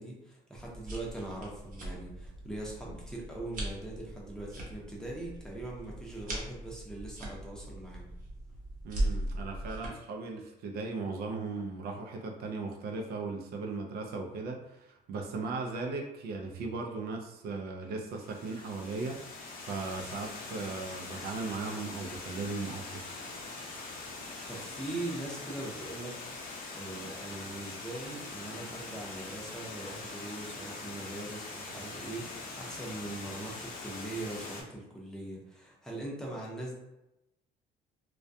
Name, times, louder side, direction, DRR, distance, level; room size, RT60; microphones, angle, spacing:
voice 1, 0.0-8.1 24.5-36.7, right 2 dB, 5° left, -4 dB, 0.6 m, -41 dB
sound 1, 0.5-9.9, right 1 dB, 50° right, 0.8 m, -39 dB
voice 2, 8.8-19.2 19.6-23.0, right 3 dB, 65° right, 2 dB, 0.5 m, -37 dB
Water, 18.1-34.6, left 3 dB, 60° left, 0.7 m, -43 dB
2.2 x 2.1 x 2.6 m, 0.90 s
cardioid pair, 110°, 17 cm